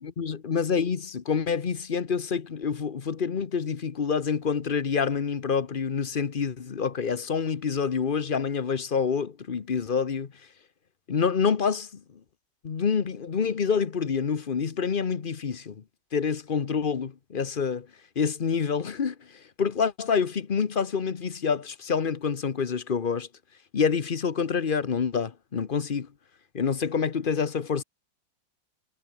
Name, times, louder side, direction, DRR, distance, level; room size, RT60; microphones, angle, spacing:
voice 1, 0.0-10.3 11.1-11.9 12.6-15.8 16.1-17.9 18.2-19.1 19.6-23.3 23.7-26.1 26.5-27.8, left 6 dB, 40° left, 0.9 m, -27 dB
omnidirectional pair, 2.0 m